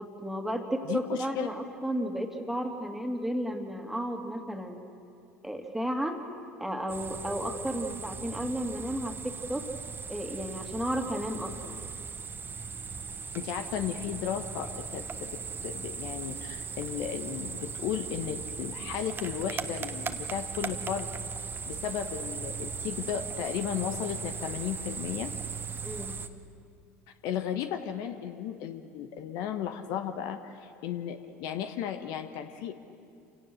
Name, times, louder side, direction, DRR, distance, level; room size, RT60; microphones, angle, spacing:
voice 1, 0.0-4.8 5.4-6.2 6.6-9.6 10.1-11.8 25.8-26.1, right 1 dB, 5° right, 3 dB, 2.5 m, -33 dB
voice 2, 0.9-1.5 13.3-21.1 21.6-25.3 27.2-32.7, left 9 dB, 60° left, 8 dB, 1.1 m, -35 dB
sound 1, 6.9-26.3, right 5 dB, 30° right, 1.2 m, -38 dB
27.5 x 17.5 x 6.5 m, 2.5 s
hypercardioid pair, 75°, 7 cm